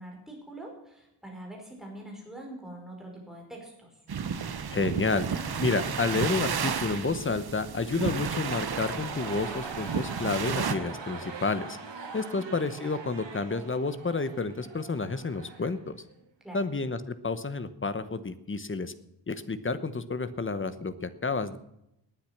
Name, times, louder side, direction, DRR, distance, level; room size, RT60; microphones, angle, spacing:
voice 1, 0.0-3.9 12.1-12.4 16.4-16.6, right 1 dB, ahead, -1 dB, 5.2 m, -44 dB
sound 1, 4.1-10.7, right 6 dB, 55° right, 1.2 m, -32 dB
voice 2, 4.7-5.3 5.6-11.8 12.1-16.0 16.5-18.9 19.3-21.6, left 3 dB, 25° left, 12 dB, 1.0 m, -30 dB
sound 2, 7.7-15.8 16.1-16.2, right 5 dB, 70° right, 3.5 m, -42 dB
19.0 x 9.5 x 5.9 m, 0.83 s
wide cardioid pair, 175°, 45 cm